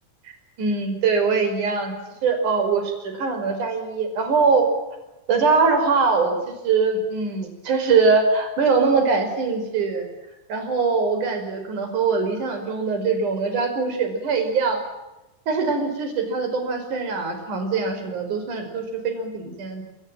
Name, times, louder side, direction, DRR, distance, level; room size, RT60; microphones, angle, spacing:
voice 1, 0.6-1.9 2.2-4.7 5.3-6.3 6.6-10.1 10.5-14.8 15.5-19.8, right 4 dB, 40° right, 6 dB, 6.4 m, -22 dB
27.5 x 24.5 x 7.6 m, 1.0 s
omnidirectional pair, 5.5 m